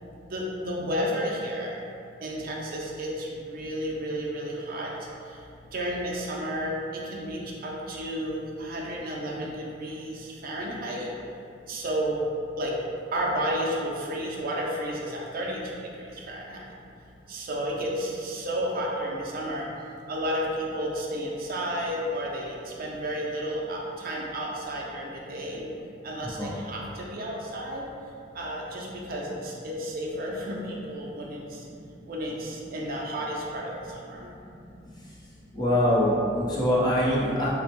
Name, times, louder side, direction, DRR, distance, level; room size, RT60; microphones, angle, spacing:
voice 1, 0.3-1.8 2.2-4.9 5.7-11.1 11.7-12.2 12.6-12.7 13.1-15.6 16.3-16.6 17.3-19.7 20.1-25.7 26.0-27.8 28.3-31.4 32.1-33.7 34.1-34.3, equal, 50° right, -3 dB, 0.5 m, -32 dB
voice 2, 26.2-26.5 35.5-37.5, left 1 dB, 20° left, -7 dB, 0.6 m, -24 dB
4.0 x 2.1 x 2.9 m, 2.6 s
head